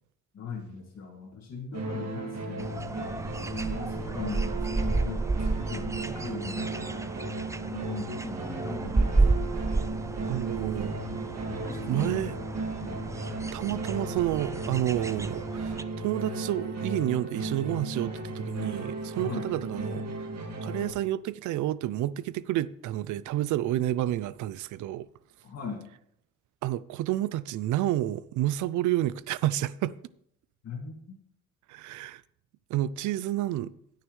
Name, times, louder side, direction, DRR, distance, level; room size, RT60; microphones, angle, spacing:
voice 1, 0.3-3.2 3.5-6.9 7.7-9.5 11.5-12.4 12.8-13.0 19.2-19.5 25.4-25.9 30.6-31.0, left 5 dB, 60° left, 2.2 m, -40 dB
sound 1, 1.7-20.9, right 2 dB, 60° right, 2.1 m, -35 dB
sound 2, 2.6-15.8, right 3 dB, 10° right, 0.4 m, -31 dB
voice 2, 10.3-11.0 11.9-12.4 13.5-20.3 20.6-25.1 26.6-30.0 31.7-32.2 32.7-33.7, right 13 dB, 80° right, 0.5 m, -30 dB
19.5 x 6.5 x 3.2 m
cardioid pair, 90°, 30 cm